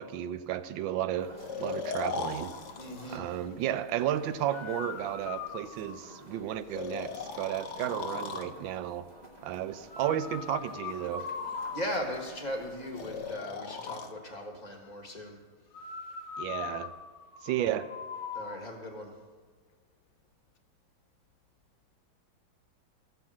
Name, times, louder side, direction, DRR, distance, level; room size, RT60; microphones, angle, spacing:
voice 1, 0.0-2.5 3.1-9.1 9.4-11.3 16.4-16.9 17.4-17.9, right 11 dB, 75° right, 12 dB, 1.3 m, -33 dB
sound 1, 1.2-13.3, right 1 dB, 25° right, 1.1 m, -51 dB
Breathing, 1.4-3.2 4.5-6.2 6.7-8.5 9.9-12.2 12.9-14.1 15.7-18.6, left 6 dB, 80° left, 0.6 m, -39 dB
voice 2, 2.8-3.3 11.7-15.4 18.3-19.1, equal, 25° left, 1 dB, 1.3 m, -38 dB
13.5 x 5.6 x 7.4 m, 1.5 s
omnidirectional pair, 2.2 m